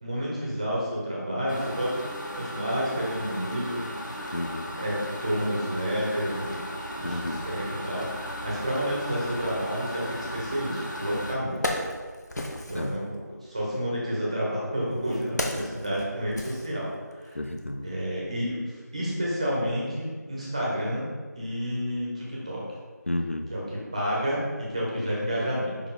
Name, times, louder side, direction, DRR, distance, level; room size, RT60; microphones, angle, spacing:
voice 1, 0.0-1.9 2.3-3.9 4.7-6.6 6.9-11.6 12.7-17.4 17.8-21.1 21.3-22.6 23.5-25.8, equal, 20° right, -5 dB, 1.1 m, -30 dB
sound 1, 1.5-11.4, equal, 90° left, 1.2 m, -37 dB
voice 2, 4.3-4.7 7.0-7.4 12.7-13.0 17.4-18.0 23.1-23.5, left 1 dB, 45° left, 5 dB, 0.4 m, -31 dB
Wood, 10.8-10.9 11.3-13.0 13.9-17.3 17.6-17.7, left 1 dB, 65° left, 1.0 m, -34 dB
5.4 x 4.6 x 4.1 m, 1.5 s
figure-of-eight pair, 170°, 10 cm